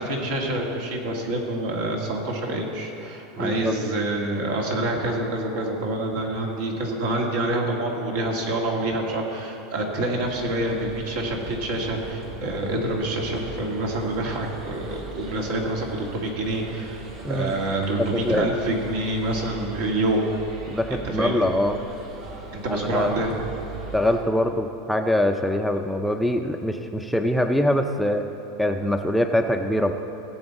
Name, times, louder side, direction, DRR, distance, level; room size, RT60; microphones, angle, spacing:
voice 1, 0.0-17.0 17.3-20.3 20.9-21.5 22.5-23.4, right 1 dB, 70° right, 0 dB, 2.1 m, -27 dB
voice 2, 3.4-3.7 12.7-12.8 17.2-17.6 18.0-18.5 20.7-21.8 22.7-23.1 23.9-28.3 28.6-29.9, left 1 dB, ahead, 4 dB, 0.4 m, -23 dB
sound 1, 10.2-24.2, right 2 dB, 50° right, 2.4 m, -40 dB
17.5 x 7.8 x 4.1 m, 2.9 s
supercardioid pair, 140°, 0 cm